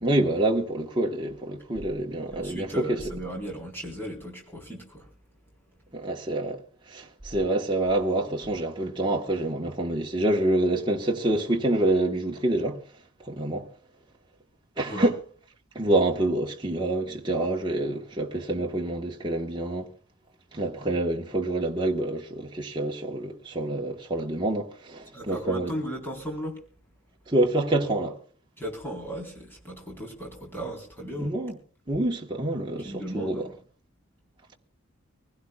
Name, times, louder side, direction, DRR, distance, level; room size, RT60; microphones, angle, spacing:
voice 1, 0.0-3.0 5.9-6.6 6.9-12.8 13.2-13.7 14.8-15.1 15.7-19.9 20.5-25.7 27.3-28.2 31.2-31.6 31.9-33.5, right 1 dB, 20° right, 1.2 m, -27 dB
voice 2, 2.3-5.1 14.9-15.1 25.1-26.6 28.6-31.4 32.8-33.6, right 1 dB, 10° left, 3.9 m, -36 dB
25.0 x 16.5 x 2.3 m
head